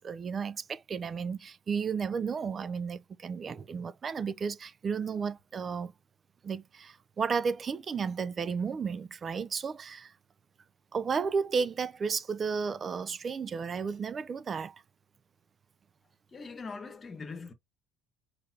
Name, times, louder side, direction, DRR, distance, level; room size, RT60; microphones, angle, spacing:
voice 1, 0.0-5.9 6.4-10.1 10.9-14.7, right 5 dB, 25° right, 0.4 m, -33 dB
voice 2, 16.3-17.5, left 4 dB, 20° left, 1.2 m, -41 dB
4.9 x 3.9 x 2.7 m
cardioid pair, 155°, 0 cm